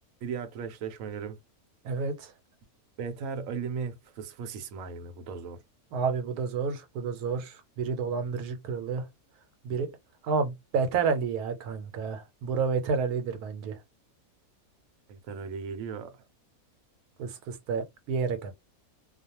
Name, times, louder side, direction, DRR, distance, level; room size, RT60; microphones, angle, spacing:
voice 1, 0.2-1.4 3.0-5.6 15.1-16.2, right 6 dB, 65° right, 0.9 m, -37 dB
voice 2, 1.8-2.3 5.9-9.1 9.6-9.9 10.2-13.8 17.2-18.5, right 5 dB, 90° right, 1.2 m, -30 dB
2.4 x 2.3 x 2.8 m
omnidirectional pair, 1.6 m